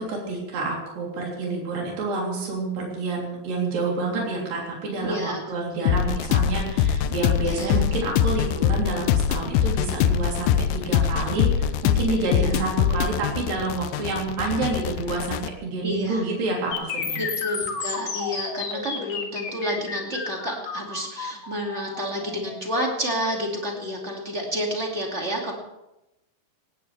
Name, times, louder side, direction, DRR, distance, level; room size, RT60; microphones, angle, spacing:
voice 1, 0.0-17.2, right 3 dB, 60° right, -2 dB, 5.0 m, -28 dB
voice 2, 5.0-5.5 5.8-6.0 7.4-7.7 12.3-12.6 15.8-16.2 17.2-25.5, equal, 20° right, 0 dB, 2.1 m, -30 dB
sound 1, 5.9-15.5, left 9 dB, 80° left, 2.3 m, -23 dB
sound 2, 16.7-24.7, left 5 dB, 55° left, 2.6 m, -33 dB
18.5 x 17.5 x 3.4 m, 0.93 s
omnidirectional pair, 4.5 m